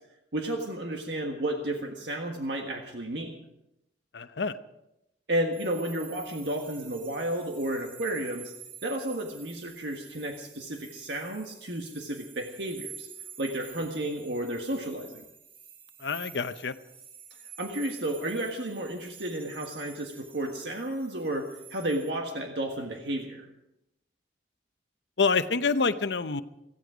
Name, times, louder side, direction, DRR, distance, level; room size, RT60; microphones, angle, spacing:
voice 1, 0.3-3.3 5.3-8.5 8.8-13.1 13.4-15.2 17.6-23.5, right 1 dB, 65° right, 2 dB, 1.6 m, -32 dB
voice 2, 4.1-4.5 16.0-16.7 25.2-26.4, left 4 dB, 65° left, 11 dB, 0.7 m, -27 dB
sound 1, 5.5-22.1, right 7 dB, 50° right, 2.0 m, -49 dB
17.5 x 15.5 x 5.0 m, 0.87 s
head